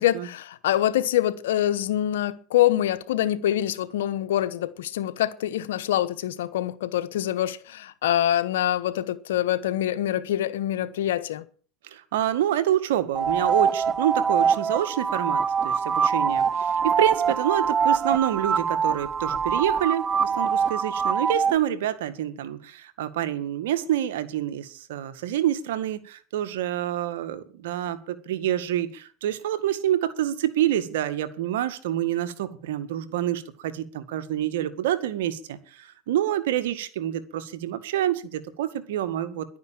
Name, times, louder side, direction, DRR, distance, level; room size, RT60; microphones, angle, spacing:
voice 1, 0.0-11.4, left 12 dB, 90° left, 1.1 m, -25 dB
voice 2, 11.8-39.5, right 11 dB, 85° right, 1.7 m, -27 dB
sound 1, 13.1-21.6, right 6 dB, 25° right, 0.6 m, -24 dB
11.5 x 9.4 x 9.0 m
supercardioid pair, 115°, 0 cm